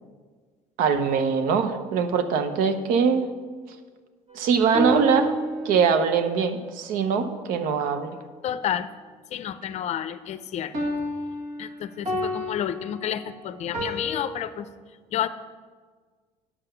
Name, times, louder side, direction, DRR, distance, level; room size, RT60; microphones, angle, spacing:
voice 1, 0.8-3.3 4.3-5.4 5.6-8.2, right 6 dB, 75° right, 9 dB, 0.8 m, -22 dB
sound 1, 4.3-6.2 10.7-14.3, equal, 55° right, 2.1 m, -31 dB
voice 2, 8.4-8.9 9.3-10.7 11.6-14.7 15.1-15.3, left 10 dB, 50° left, 13 dB, 0.5 m, -30 dB
9.5 x 5.8 x 6.8 m, 1.5 s
cardioid pair, 105°, 14 cm